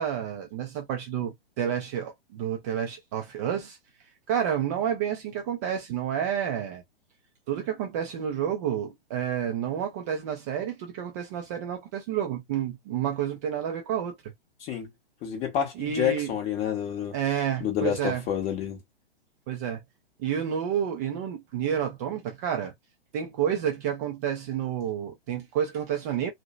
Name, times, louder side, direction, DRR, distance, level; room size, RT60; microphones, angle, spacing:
voice 1, 0.0-3.8 4.3-6.8 7.5-14.1 15.8-16.3 17.1-18.2 19.5-19.8 20.2-22.7 23.1-26.3, right 9 dB, 20° right, 0.4 m, -30 dB
voice 2, 15.2-17.2 17.6-18.8, left 9 dB, 20° left, 0.8 m, -29 dB
2.7 x 2.1 x 2.3 m
figure-of-eight pair, 115°, 29 cm